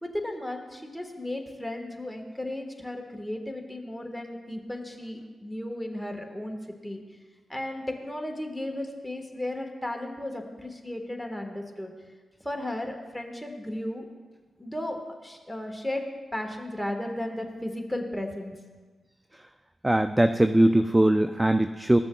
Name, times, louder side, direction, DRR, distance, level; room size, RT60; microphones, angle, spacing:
voice 1, 0.0-6.6 6.8-7.0 7.5-11.9 12.4-14.1 14.6-16.0 16.3-18.5, left 1 dB, ahead, 2 dB, 1.4 m, -34 dB
voice 2, 19.8-22.0, right 1 dB, 15° right, 9 dB, 0.3 m, -21 dB
14.5 x 6.9 x 2.3 m, 1.3 s
supercardioid pair, 45°, 0 cm